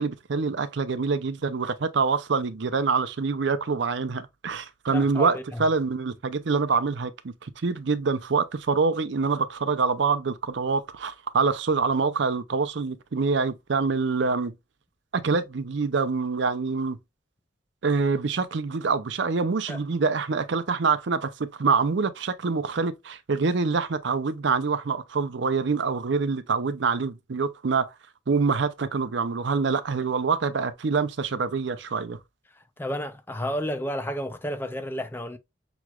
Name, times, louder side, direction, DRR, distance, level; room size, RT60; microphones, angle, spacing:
voice 1, 0.0-14.5 15.1-17.0 17.8-27.9 28.3-32.2, right 4 dB, 65° right, 0.5 m, -25 dB
voice 2, 4.9-5.6 19.7-19.8 32.8-35.4, equal, 10° left, 0.4 m, -31 dB
6.0 x 3.1 x 2.3 m
head